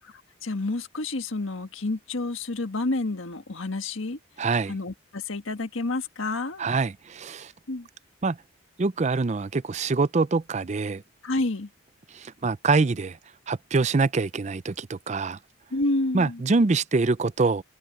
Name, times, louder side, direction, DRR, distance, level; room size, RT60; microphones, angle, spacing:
voice 1, 0.4-4.2 4.7-6.6 7.7-7.9 11.2-11.7 15.7-16.4, left 2 dB, 80° left, 1.5 m, -29 dB
voice 2, 4.4-4.8 6.6-7.5 8.2-8.4 8.8-11.0 12.1-13.2 13.5-15.4 16.1-17.6, right 3 dB, 35° right, 0.5 m, -25 dB
head